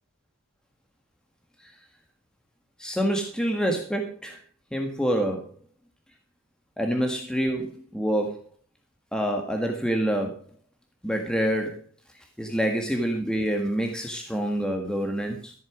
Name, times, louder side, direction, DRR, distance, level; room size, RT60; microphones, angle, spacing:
voice 1, 2.8-4.4 4.7-5.5 6.8-8.4 9.1-10.4 11.0-11.8 12.4-15.5, equal, 5° left, 3 dB, 1.6 m, -27 dB
14.0 x 9.0 x 6.1 m, 0.41 s
head